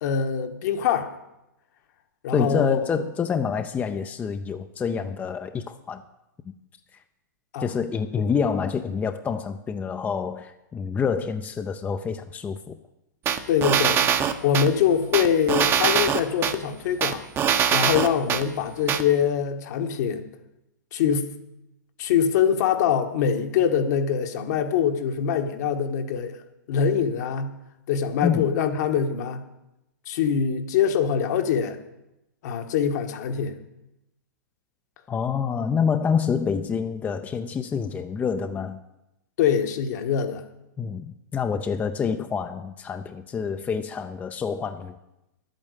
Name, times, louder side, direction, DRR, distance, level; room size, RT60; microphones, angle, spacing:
voice 1, 0.0-1.1 2.2-3.0 7.5-7.7 13.5-14.0 14.4-17.3 17.7-20.2 20.9-21.3 22.0-26.4 26.7-27.5 27.9-29.4 30.1-31.8 32.4-33.6 39.4-40.4, left 7 dB, 60° left, 1.5 m, -24 dB
voice 2, 2.3-6.0 7.6-12.8 28.2-28.5 35.1-38.8 40.8-45.0, left 6 dB, 15° left, 0.6 m, -27 dB
sound 1, 13.3-14.7 15.1-16.5 17.0-18.4 18.9-19.0, right 8 dB, 25° right, 0.9 m, -22 dB
11.0 x 8.8 x 8.2 m
hypercardioid pair, 135°, 10 cm